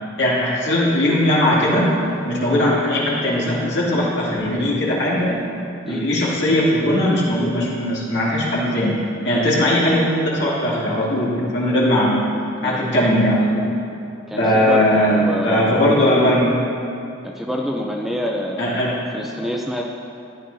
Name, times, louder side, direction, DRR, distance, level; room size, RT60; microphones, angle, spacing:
voice 1, 0.2-2.0 2.2-5.4 5.9-12.3 12.6-13.7 14.4-16.5 18.6-19.0, left 1 dB, 60° left, -7 dB, 2.4 m, -19 dB
voice 2, 14.3-15.8 17.2-18.6 19.1-19.8, equal, ahead, -1 dB, 0.4 m, -27 dB
13.5 x 9.4 x 2.7 m, 2.6 s
head